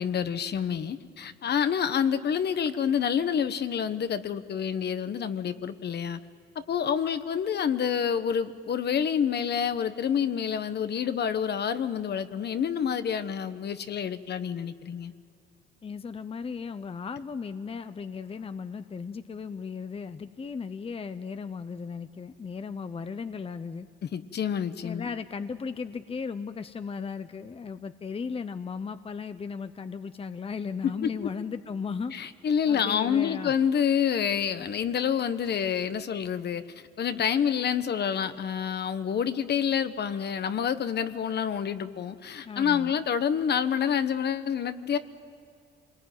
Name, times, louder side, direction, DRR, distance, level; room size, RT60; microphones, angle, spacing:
voice 1, 0.0-6.2 6.5-15.1 24.0-25.1 30.8-30.9 32.1-36.6 37.0-45.0, left 8 dB, 55° left, 11 dB, 1.2 m, -28 dB
voice 2, 15.8-23.9 24.8-32.1 32.7-33.5 42.4-43.0, left 5 dB, 30° left, 11 dB, 0.8 m, -36 dB
26.5 x 20.0 x 9.3 m, 2.4 s
cardioid pair, 90°, 20 cm